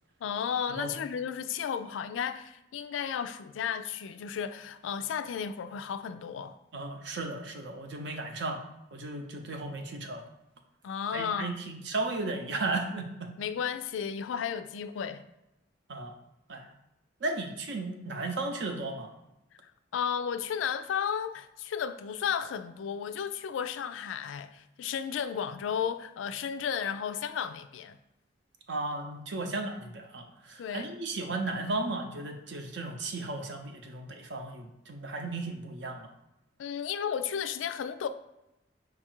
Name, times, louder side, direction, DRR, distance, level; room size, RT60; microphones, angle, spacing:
voice 1, 0.2-6.6 10.8-11.6 13.4-15.2 19.9-28.0 30.6-30.9 36.6-38.1, left 7 dB, 85° left, 0.3 m, -33 dB
voice 2, 6.7-8.6 8.9-10.2 11.1-13.3 15.9-16.1 16.5-16.7 17.2-19.1 28.7-36.1, right 2 dB, 70° right, 0.6 m, -35 dB
4.8 x 2.4 x 4.4 m
head